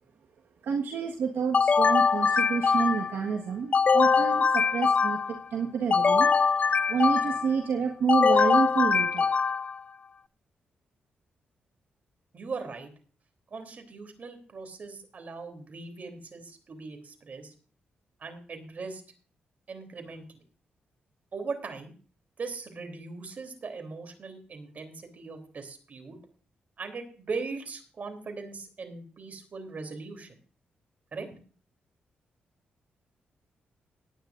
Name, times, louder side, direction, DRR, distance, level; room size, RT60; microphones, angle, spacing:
voice 1, 0.6-6.3 6.9-9.3, right 6 dB, 75° right, 1 dB, 1.5 m, -29 dB
sound 1, 1.5-3.2 3.7-5.4 5.9-7.6 8.1-9.8, left 5 dB, 40° left, 0.5 m, -23 dB
voice 2, 12.3-12.9 13.5-17.5 18.2-19.0 19.7-20.2 21.3-21.9 22.4-26.2 26.8-30.4 31.1-31.4, right 4 dB, 50° right, 6 dB, 3.4 m, -39 dB
19.0 x 10.0 x 2.6 m, 0.40 s
cardioid pair, 85°, 3 cm